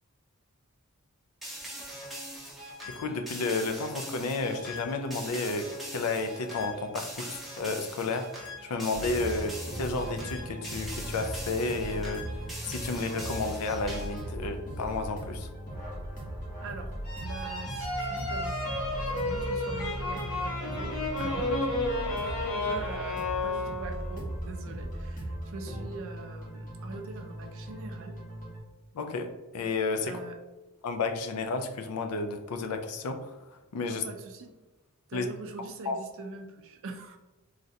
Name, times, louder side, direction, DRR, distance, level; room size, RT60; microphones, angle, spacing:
sound 1, 1.4-14.3, equal, ahead, 0.6 m, -42 dB
voice 1, 2.9-12.2 12.6-15.5 28.9-30.2 30.8-33.4 33.7-34.0 35.1-35.3 35.9-36.0, left 3 dB, 85° left, 7 dB, 0.4 m, -32 dB
sound 2, 8.9-28.6, equal, 35° left, 0.8 m, -38 dB
voice 2, 16.6-16.9 17.2-18.6 19.1-21.9 22.2-28.2 30.0-30.4 33.9-34.5 35.1-37.2, right 3 dB, 60° right, 5 dB, 0.4 m, -43 dB
sound 3, 17.0-24.2, left 2 dB, 65° left, 0.9 m, -32 dB
3.2 x 2.5 x 2.6 m, 1.1 s
head